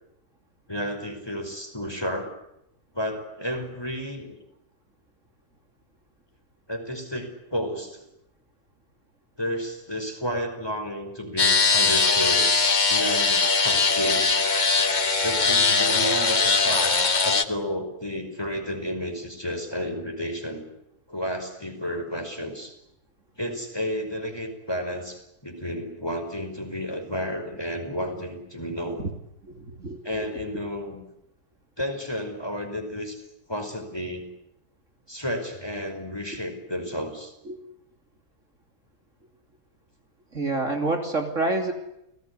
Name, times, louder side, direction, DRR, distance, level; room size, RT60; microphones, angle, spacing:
voice 1, 0.7-2.4 2.9-4.4 6.7-8.0 9.4-12.5 12.9-14.4 15.2-20.7 21.1-22.7 23.4-29.0 30.0-31.0 31.8-33.2 33.5-34.3 35.1-37.3, equal, 15° left, 5 dB, 5.3 m, -32 dB
sound 1, 11.4-17.4, left 4 dB, 30° left, 1.2 m, -21 dB
voice 2, 29.5-30.0 37.5-37.6 40.3-41.7, right 2 dB, 50° right, 4 dB, 3.3 m, -27 dB
30.0 x 19.0 x 9.9 m, 0.82 s
omnidirectional pair, 1.7 m